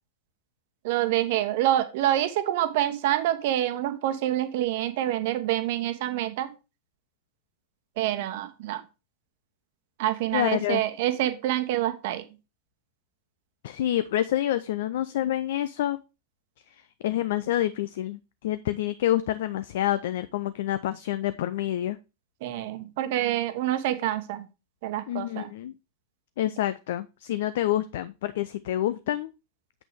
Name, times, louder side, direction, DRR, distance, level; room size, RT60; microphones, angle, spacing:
voice 1, 0.8-6.5 8.0-8.8 10.0-12.2 22.4-24.5 24.8-25.5, right 13 dB, 50° right, 10 dB, 1.1 m, -27 dB
voice 2, 10.3-10.8 13.6-16.0 16.7-22.0 25.1-25.7 26.4-29.3, left 13 dB, 55° left, 13 dB, 0.5 m, -28 dB
8.1 x 5.9 x 3.4 m, 0.28 s
figure-of-eight pair, 90°, 0 cm